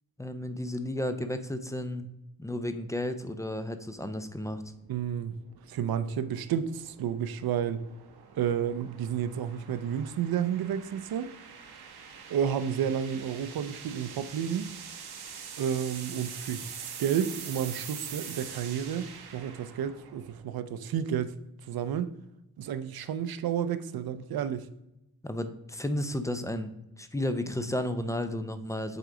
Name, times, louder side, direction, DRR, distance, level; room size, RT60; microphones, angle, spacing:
voice 1, 0.2-2.1 2.4-4.6 25.2-29.0, left 1 dB, 10° left, 0.4 m, -33 dB
sound 1, 4.3-20.6, right 7 dB, 90° right, 1.1 m, -45 dB
voice 2, 4.9-5.3 5.7-7.8 8.3-11.3 12.3-14.7 15.6-21.4 21.7-22.1 22.6-24.7, right 8 dB, 70° right, 0.6 m, -31 dB
7.9 x 3.9 x 4.9 m
wide cardioid pair, 145°, 37 cm